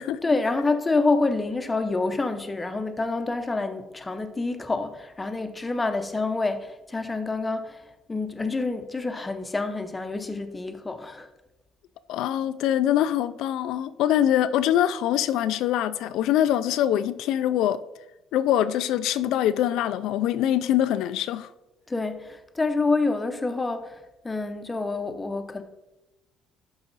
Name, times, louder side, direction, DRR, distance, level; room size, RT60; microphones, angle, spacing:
voice 1, 0.2-11.3 21.9-24.0 24.2-25.6, left 3 dB, 15° left, 0.6 m, -27 dB
voice 2, 12.1-17.8 18.3-21.5, left 11 dB, 75° left, 0.3 m, -24 dB
11.5 x 4.8 x 4.0 m
cardioid pair, 150°, 0 cm